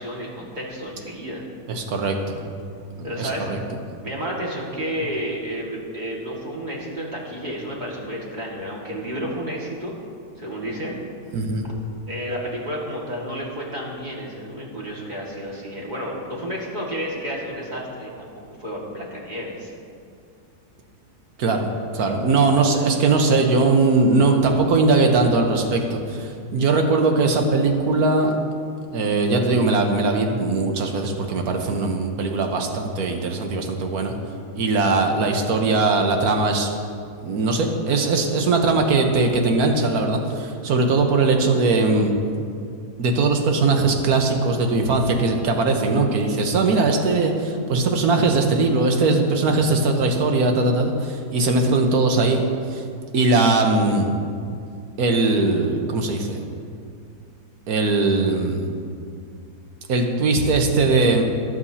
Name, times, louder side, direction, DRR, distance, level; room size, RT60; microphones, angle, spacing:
voice 1, 0.0-1.4 3.0-3.5 4.0-9.9 10.4-11.0 12.1-18.3 18.6-19.7, equal, 25° right, -4 dB, 2.0 m, -31 dB
voice 2, 1.7-2.4 3.0-3.6 11.3-11.7 21.4-21.7 21.9-28.3 28.9-34.1 34.5-36.7 37.2-42.1 43.0-52.4 52.7-52.8 53.1-54.1 55.0-56.4 57.7-58.7 59.9-61.2, right 3 dB, 65° right, 3 dB, 1.5 m, -20 dB
20.0 x 7.9 x 2.8 m, 2.3 s
omnidirectional pair, 1.7 m